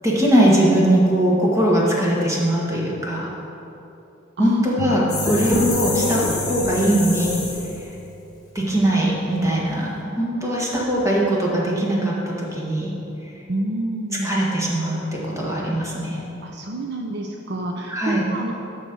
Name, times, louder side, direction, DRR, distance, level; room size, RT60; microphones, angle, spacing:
voice 1, 0.0-3.3 4.4-7.4 8.6-12.9 14.2-16.3 17.9-18.2, right 1 dB, 15° right, -4 dB, 1.8 m, -20 dB
sound 1, 4.8-9.0, left 4 dB, 80° left, 0.5 m, -34 dB
sound 2, 5.1-7.9, left 1 dB, 20° left, 1.9 m, -25 dB
voice 2, 13.5-14.3 16.4-18.5, right 1 dB, 60° right, 2 dB, 0.6 m, -28 dB
11.5 x 4.3 x 6.9 m, 2.9 s
head